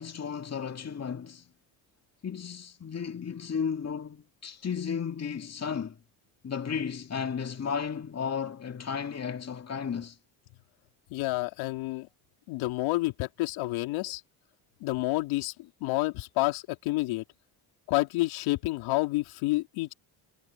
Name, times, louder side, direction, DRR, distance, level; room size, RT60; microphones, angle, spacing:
voice 1, 0.0-1.4 2.2-6.0 6.4-10.2, left 6 dB, 30° left, 2.2 m, -34 dB
voice 2, 11.1-12.1 12.5-14.2 14.8-17.2 17.9-19.9, left 20 dB, 80° left, 3.4 m, -29 dB
supercardioid pair, 70°, 47 cm